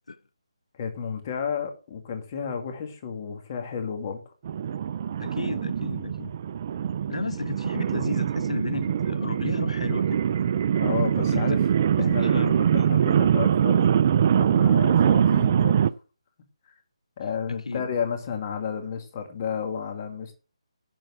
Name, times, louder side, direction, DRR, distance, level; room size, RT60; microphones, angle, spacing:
voice 1, 0.8-4.3 10.7-11.7 12.0-13.9 14.3-15.9 16.7-16.8 17.2-20.3, left 6 dB, 30° left, 2.1 m, -32 dB
sound 1, 4.5-15.9, right 8 dB, 30° right, 0.4 m, -23 dB
voice 2, 5.2-6.3 7.1-10.2 11.3-11.5 12.2-12.9 17.5-17.8, left 3 dB, 85° left, 0.7 m, -33 dB
11.0 x 4.6 x 7.2 m
hypercardioid pair, 165°, 3 cm